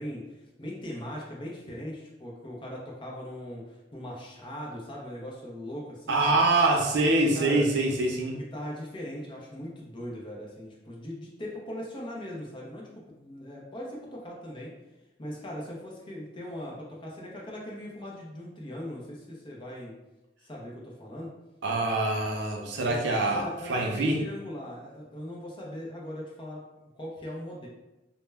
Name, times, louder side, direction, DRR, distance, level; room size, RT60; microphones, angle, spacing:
voice 1, 0.0-6.4 7.3-7.7 8.3-14.7 15.2-20.0 20.4-21.3 22.7-26.6 26.9-27.7, equal, 30° left, -3 dB, 0.6 m, -40 dB
voice 2, 6.1-8.4 21.6-24.2, right 2 dB, 70° right, 1 dB, 0.5 m, -25 dB
2.1 x 2.1 x 3.3 m, 0.98 s
head